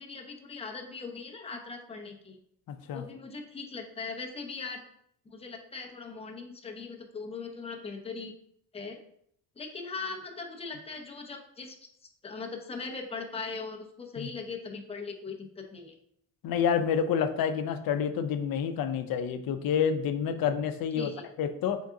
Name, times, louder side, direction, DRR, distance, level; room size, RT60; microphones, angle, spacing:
voice 1, 0.0-2.4 2.9-4.8 5.3-8.3 8.7-9.0 9.6-11.8 12.2-15.9 21.0-21.2, left 4 dB, 15° left, 2 dB, 0.6 m, -40 dB
voice 2, 2.7-3.0 14.2-14.3 16.4-21.1 21.4-21.8, left 7 dB, 65° left, 9 dB, 0.6 m, -28 dB
4.0 x 3.6 x 3.6 m, 0.70 s
cardioid pair, 135°, 39 cm